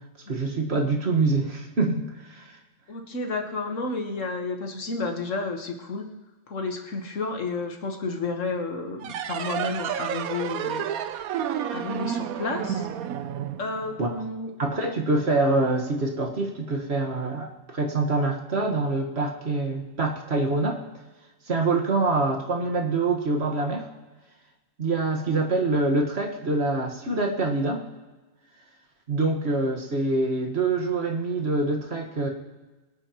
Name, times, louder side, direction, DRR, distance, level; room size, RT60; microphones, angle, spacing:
voice 1, 0.3-2.6 14.0-14.2 14.6-20.8 21.5-23.9 24.8-27.8 29.1-32.3, right 3 dB, 50° right, 2 dB, 1.7 m, -25 dB
voice 2, 2.9-6.1 6.5-10.9 11.7-12.9 13.6-14.5, left 3 dB, 65° left, 4 dB, 1.6 m, -31 dB
sound 1, 9.0-14.3, right 9 dB, 90° right, 1.1 m, -31 dB
23.5 x 9.0 x 3.0 m, 1.2 s
omnidirectional pair, 1.4 m